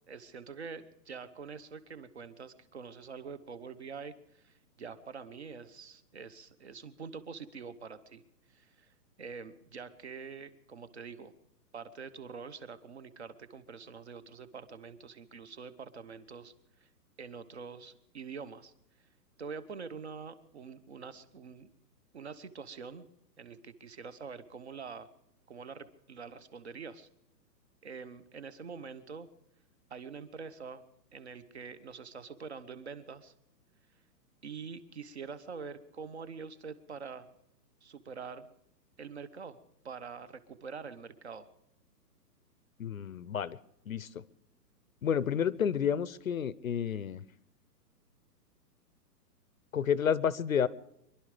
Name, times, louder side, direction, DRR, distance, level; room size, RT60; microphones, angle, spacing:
voice 1, 0.1-8.2 8.5-11.3 11.7-16.5 16.8-16.9 17.2-18.7 19.4-21.7 22.1-23.1 23.4-25.1 25.5-27.1 27.8-29.3 29.9-30.8 31.1-33.3 34.4-37.3 37.8-38.5 39.0-39.6 39.8-41.5, right 5 dB, 40° right, 14 dB, 1.1 m, -45 dB
voice 2, 42.8-43.6 43.9-44.2 45.0-47.2 49.7-50.7, left 8 dB, 55° left, 19 dB, 0.7 m, -30 dB
25.0 x 11.5 x 5.0 m, 0.79 s
hypercardioid pair, 180°, 50 cm